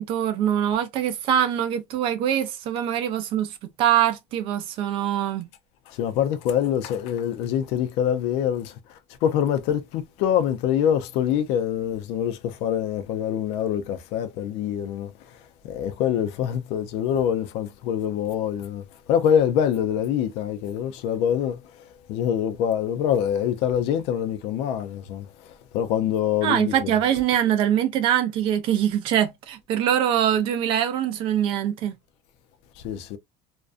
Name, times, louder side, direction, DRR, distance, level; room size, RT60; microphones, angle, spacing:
voice 1, 0.0-5.5 26.4-32.0, right 10 dB, 45° right, 0.4 m, -23 dB
voice 2, 5.9-8.7 9.2-15.1 15.6-18.8 19.1-21.6 22.1-25.3 25.7-26.9 32.8-33.2, left 9 dB, 50° left, 0.4 m, -25 dB
2.4 x 2.2 x 2.4 m
cardioid pair, 170°, 13 cm